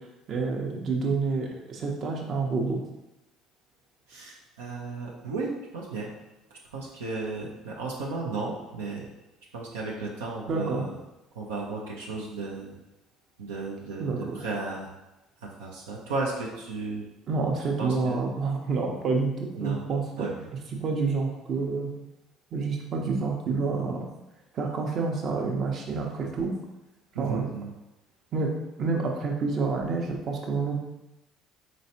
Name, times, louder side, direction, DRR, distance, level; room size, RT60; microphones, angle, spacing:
voice 1, 0.3-2.8 10.5-10.8 14.0-14.2 17.3-20.3 20.8-21.9 22.5-24.0 24.5-26.5 27.2-27.5 28.3-28.5 28.8-30.8, right 4 dB, 50° right, 1 dB, 0.7 m, -28 dB
voice 2, 4.1-6.1 6.5-9.1 9.5-11.0 11.3-12.7 13.4-14.9 15.4-17.0 17.8-18.2 18.9-19.0 19.6-19.8 20.2-20.5 27.1-27.7, right 3 dB, 90° right, -3 dB, 0.5 m, -34 dB
4.2 x 3.0 x 2.8 m, 0.97 s
hypercardioid pair, 70°, 0 cm